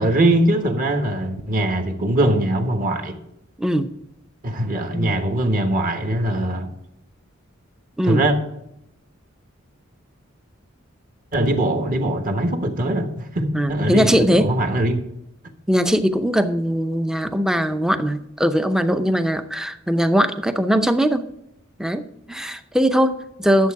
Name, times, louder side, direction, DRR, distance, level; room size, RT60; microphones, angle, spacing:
voice 1, 0.0-3.2 4.4-6.7 8.0-8.4 11.3-15.0, right 1 dB, 45° right, 1.3 m, -21 dB
voice 2, 13.5-14.5 15.7-21.3 21.8-23.7, equal, 5° right, 0.6 m, -20 dB
11.0 x 7.5 x 4.7 m
head